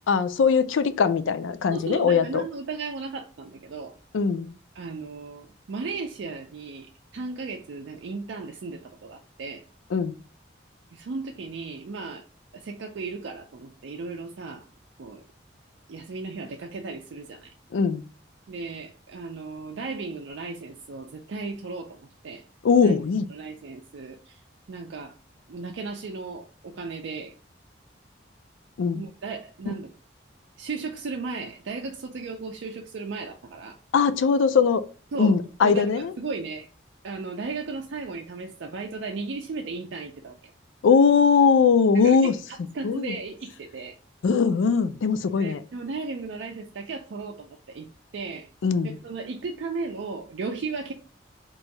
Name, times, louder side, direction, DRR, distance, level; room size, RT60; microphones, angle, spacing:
voice 1, 0.1-2.4 4.1-4.5 9.9-10.2 17.7-18.0 22.6-23.3 28.8-29.0 29.7-29.8 33.9-34.8 35.2-36.1 40.8-42.3 42.8-43.2 44.2-45.6 48.6-49.0, left 5 dB, 80° left, 0.4 m, -21 dB
voice 2, 1.7-3.9 4.7-9.6 10.9-12.2 12.5-14.7 15.0-15.2 15.9-17.5 18.5-22.4 22.8-22.9 23.3-24.4 24.7-25.2 25.5-27.3 28.9-29.9 30.6-33.8 35.1-36.7 37.0-40.5 42.0-43.9 45.4-47.9 48.1-48.5 49.0-50.9, right 4 dB, 70° right, 0.4 m, -35 dB
3.0 x 2.7 x 4.4 m
head